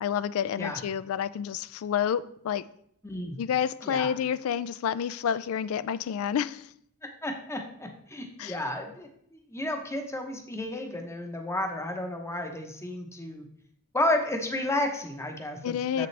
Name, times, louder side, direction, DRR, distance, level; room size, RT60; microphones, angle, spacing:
voice 1, 0.0-2.6 3.4-6.7 8.4-8.6 15.6-16.1, left 8 dB, 70° left, 0.3 m, -29 dB
voice 2, 3.0-3.4 3.8-4.1 7.2-13.5 13.9-16.1, left 1 dB, 10° left, 0.8 m, -32 dB
7.6 x 6.7 x 3.2 m
head